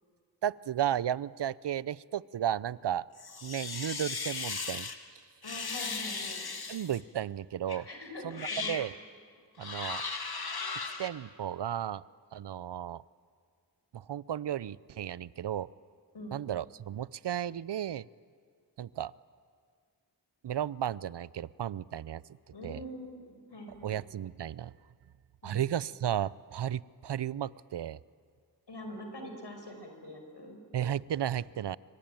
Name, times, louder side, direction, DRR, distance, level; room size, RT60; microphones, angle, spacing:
voice 1, 0.4-3.1 3.4-4.9 6.7-7.9 8.2-8.9 9.6-10.0 11.0-12.0 12.3-13.0 13.9-15.7 16.3-18.1 18.8-19.1 20.4-22.2 22.6-22.8 23.8-24.7 25.4-28.0 30.7-31.8, right 10 dB, 75° right, 20 dB, 0.6 m, -34 dB
sound 1, 3.2-5.0 5.4-7.0 7.7-7.8 8.3-8.9 9.6-11.1, left 4 dB, 60° left, 1.9 m, -37 dB
voice 2, 5.4-6.4 7.9-8.7 16.1-16.4 22.5-24.0 25.4-25.7 28.7-30.6, equal, 75° left, 5 dB, 5.1 m, -44 dB
25.5 x 24.5 x 9.1 m, 2.1 s
cardioid pair, 50°, 42 cm